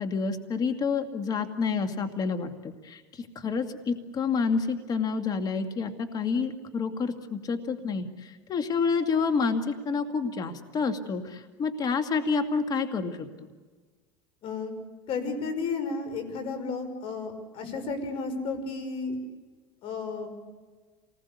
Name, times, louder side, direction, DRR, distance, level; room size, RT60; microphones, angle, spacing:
voice 1, 0.0-13.5, left 5 dB, 35° left, 7 dB, 2.2 m, -29 dB
voice 2, 14.4-14.7 15.1-19.2 19.8-20.3, left 4 dB, 50° left, 9 dB, 5.9 m, -32 dB
27.5 x 20.0 x 8.4 m, 1.4 s
supercardioid pair, 115°, 12 cm